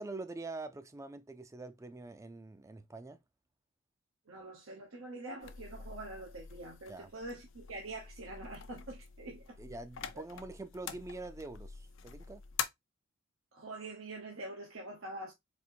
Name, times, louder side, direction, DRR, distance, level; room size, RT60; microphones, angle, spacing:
voice 1, 0.0-3.2 6.9-7.1 9.6-12.4, right 2 dB, 15° right, 0.4 m, -45 dB
voice 2, 4.3-9.6 13.5-15.3, right 2 dB, 80° right, 0.8 m, -45 dB
sound 1, 5.4-12.7, left 7 dB, 65° left, 0.5 m, -45 dB
4.2 x 2.5 x 2.6 m
head